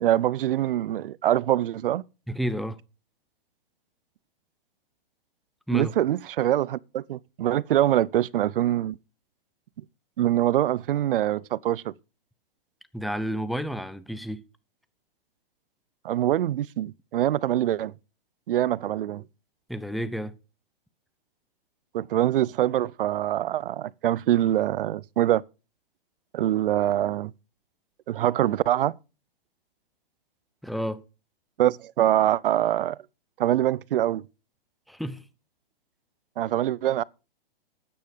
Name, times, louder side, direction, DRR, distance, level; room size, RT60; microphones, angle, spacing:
voice 1, 0.0-2.0 5.7-9.0 10.2-11.9 16.0-17.9 18.5-19.2 21.9-25.4 26.3-27.3 28.1-29.0 31.6-33.0 33.4-34.2 36.4-37.0, right 12 dB, 65° right, 0.6 m, -24 dB
voice 2, 2.3-2.8 5.7-5.9 12.9-14.4 19.7-20.3 30.6-31.0 34.9-35.2, equal, ahead, 0.6 m, -30 dB
12.0 x 9.4 x 5.1 m
hypercardioid pair, 130°, 29 cm